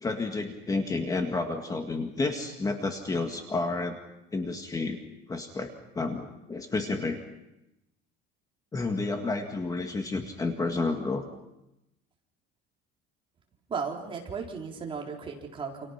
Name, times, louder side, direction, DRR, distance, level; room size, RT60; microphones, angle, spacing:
voice 1, 0.0-4.0 4.3-5.0 5.3-7.2 8.7-11.2, left 3 dB, 15° left, 5 dB, 1.9 m, -30 dB
voice 2, 13.7-15.9, right 5 dB, 25° right, 0 dB, 4.0 m, -35 dB
29.0 x 28.0 x 5.9 m, 0.90 s
cardioid pair, 150°, 21 cm